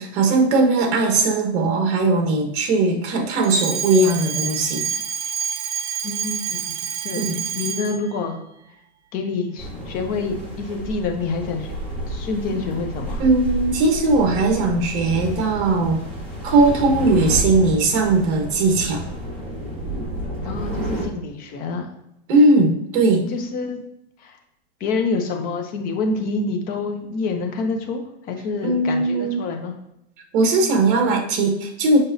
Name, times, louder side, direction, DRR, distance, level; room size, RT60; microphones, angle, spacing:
voice 1, 0.0-4.8 7.2-7.4 13.2-16.0 16.4-19.0 22.3-23.3 28.6-29.4 30.3-32.0, right 2 dB, 50° right, 2 dB, 1.4 m, -19 dB
Alarm, 3.4-8.1, right 8 dB, 80° right, 0.7 m, -28 dB
voice 2, 6.0-6.6 7.0-8.4 9.1-11.7 12.1-13.2 20.4-21.9 23.3-23.8 24.2-24.4 24.8-29.7, left 3 dB, 25° left, 4 dB, 0.7 m, -27 dB
sound 1, 9.6-21.0, right 1 dB, 5° left, 2.1 m, -30 dB
7.1 x 5.3 x 2.6 m, 0.83 s
supercardioid pair, 160°, 33 cm